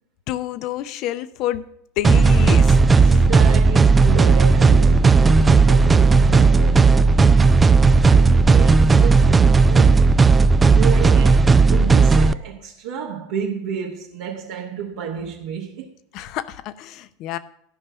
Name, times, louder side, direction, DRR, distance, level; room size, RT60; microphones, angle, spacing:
voice 1, 0.3-1.7 2.0-3.3 16.1-17.4, left 13 dB, 50° left, 0.7 m, -28 dB
sound 1, 2.0-12.3, right 4 dB, 20° right, 0.4 m, -14 dB
voice 2, 3.0-7.8 8.0-10.1 10.7-15.9, right 8 dB, 70° right, 1.3 m, -31 dB
12.5 x 5.5 x 7.2 m
hypercardioid pair, 85°, 0 cm